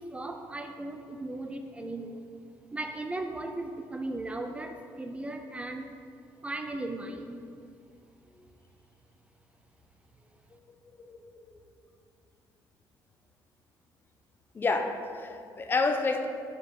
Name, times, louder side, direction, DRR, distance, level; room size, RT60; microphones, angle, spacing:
voice 1, 0.0-2.3 2.7-5.9 6.4-7.4, right 2 dB, 15° right, 5 dB, 0.4 m, -37 dB
voice 2, 10.9-11.2 14.5-16.3, left 3 dB, 30° left, 6 dB, 0.6 m, -29 dB
8.0 x 5.2 x 4.6 m, 2.4 s
cardioid pair, 125°, 8 cm